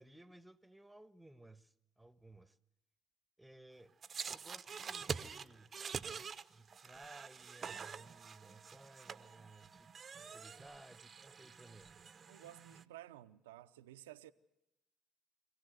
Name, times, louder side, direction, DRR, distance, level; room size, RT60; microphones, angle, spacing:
voice 1, 0.0-2.6 3.4-3.9 4.3-5.7 6.1-12.0, right 2 dB, 10° right, 1.3 m, -59 dB
sound 1, 4.0-12.8, right 6 dB, 40° right, 0.8 m, -46 dB
voice 2, 12.3-14.3, right 13 dB, 85° right, 0.7 m, -54 dB
25.0 x 16.5 x 8.0 m
hypercardioid pair, 60°, 0 cm